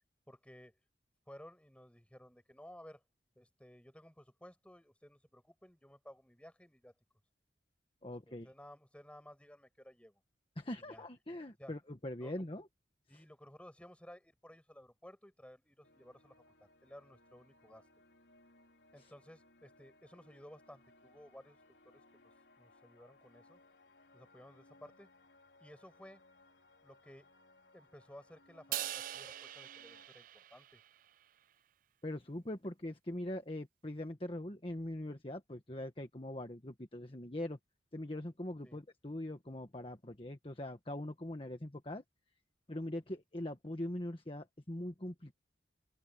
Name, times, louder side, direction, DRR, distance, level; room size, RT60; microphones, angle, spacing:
voice 1, 0.3-0.8 1.3-3.0 3.4-6.9 8.0-10.2 10.8-11.0 11.6-11.7 12.2-12.3 13.1-16.3 16.6-17.9 18.9-21.6 21.8-22.3 22.6-23.6 24.1-25.1 25.6-26.2 26.8-27.3 27.7-30.8 38.6-38.8, equal, 5° left, 7.2 m, -56 dB
voice 2, 8.0-8.5 10.6-12.7 32.0-37.6 37.9-42.0 42.7-45.3, left 1 dB, 30° left, 1.4 m, -42 dB
sound 1, 15.8-30.1, left 2 dB, 85° left, 3.7 m, -65 dB
Crash cymbal, 28.7-31.1, right 13 dB, 50° right, 0.4 m, -42 dB
head